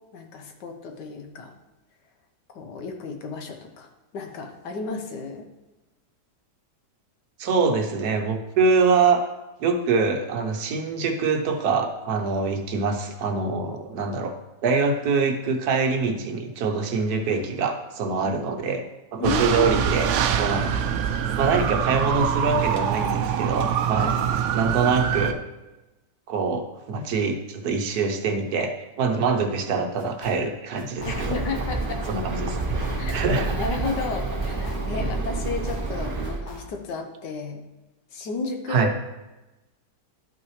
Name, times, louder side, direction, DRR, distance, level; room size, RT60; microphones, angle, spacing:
voice 1, 0.1-1.5 2.5-5.5 18.2-18.3 19.2-19.8 24.0-24.3 31.1-32.0 33.0-33.1 33.6-37.6 38.1-38.9, left 4 dB, 85° left, 4 dB, 1.5 m, -33 dB
voice 2, 7.4-9.3 9.6-14.3 14.6-18.8 19.1-20.1 20.4-20.9 21.4-24.1 24.5-25.3 26.3-31.4 32.1-32.6 33.1-33.6 38.7-38.9, right 4 dB, 65° right, 5 dB, 1.2 m, -24 dB
sound 1, 19.2-25.3, right 8 dB, 85° right, 0.6 m, -24 dB
sound 2, 30.0-30.5 30.8-31.5 31.8-32.3 32.6-33.3 33.6-35.1 35.4-36.9, left 3 dB, 65° left, 2.1 m, -45 dB
Bird, 31.0-36.4, right 3 dB, 35° right, 1.0 m, -28 dB
12.0 x 5.9 x 3.1 m, 1.1 s
omnidirectional pair, 1.8 m